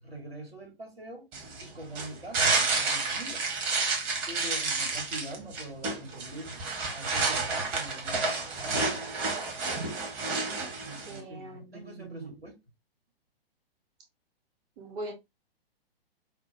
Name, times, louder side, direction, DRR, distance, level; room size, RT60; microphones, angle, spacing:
voice 1, 0.0-1.3 1.6-3.4 4.3-6.6 6.9-9.0 10.8-12.6, right 1 dB, 75° right, 2.2 m, -43 dB
sound 1, 1.3-11.2, right 3 dB, 30° right, 0.9 m, -30 dB
voice 2, 11.1-12.4 14.8-15.1, right 1 dB, 10° right, 0.4 m, -41 dB
4.9 x 2.0 x 3.0 m
figure-of-eight pair, 115°, 30 cm